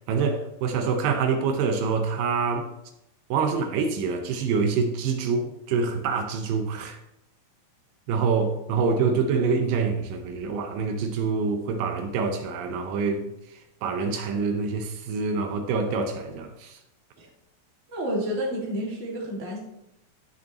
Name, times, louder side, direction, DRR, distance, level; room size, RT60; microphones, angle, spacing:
voice 1, 0.1-2.7 3.3-7.0 8.1-13.3 13.8-16.8, right 5 dB, 80° right, 6 dB, 2.4 m, -26 dB
voice 2, 17.9-19.6, equal, 25° right, -2 dB, 1.8 m, -30 dB
13.0 x 6.3 x 3.0 m, 0.83 s
omnidirectional pair, 4.0 m